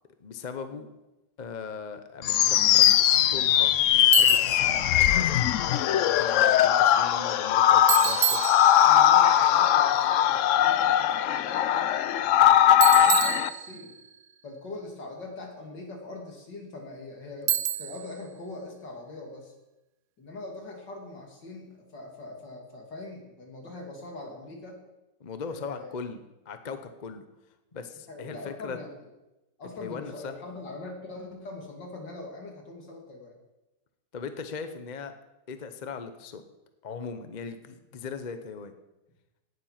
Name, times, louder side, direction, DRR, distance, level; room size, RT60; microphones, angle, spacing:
voice 1, 0.2-0.9 1.4-5.5 6.0-8.4 25.2-26.2 26.5-27.2 27.7-28.8 29.8-30.3 34.1-35.1 35.5-36.4 36.8-38.7, left 5 dB, 40° left, 9 dB, 0.7 m, -39 dB
sound 1, 2.2-13.5, left 11 dB, 90° left, 0.6 m, -20 dB
Bicycle, 4.1-4.7 7.9-9.1 12.8-14.1 17.5-18.1, right 11 dB, 80° right, 1.4 m, -28 dB
voice 2, 8.8-13.9 14.4-17.5 17.8-19.5 20.2-24.8 25.5-25.9 28.1-28.9 29.6-33.4, left 2 dB, 75° left, 1 dB, 3.2 m, -42 dB
17.5 x 7.5 x 5.8 m, 0.99 s
omnidirectional pair, 1.9 m